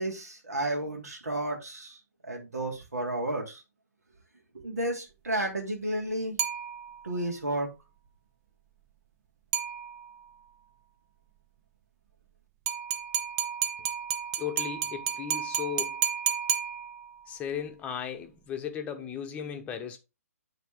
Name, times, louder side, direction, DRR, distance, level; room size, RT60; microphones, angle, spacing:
voice 1, 0.0-2.0 2.3-3.6 4.5-6.4 7.0-7.7, right 1 dB, 75° right, 3.4 m, -32 dB
sound 1, 6.4-7.2 9.5-10.3 12.7-17.3, right 9 dB, 25° right, 0.7 m, -32 dB
voice 2, 14.4-16.0 17.3-20.0, left 8 dB, 15° left, 1.1 m, -36 dB
9.0 x 4.2 x 3.6 m
figure-of-eight pair, 130°, 9 cm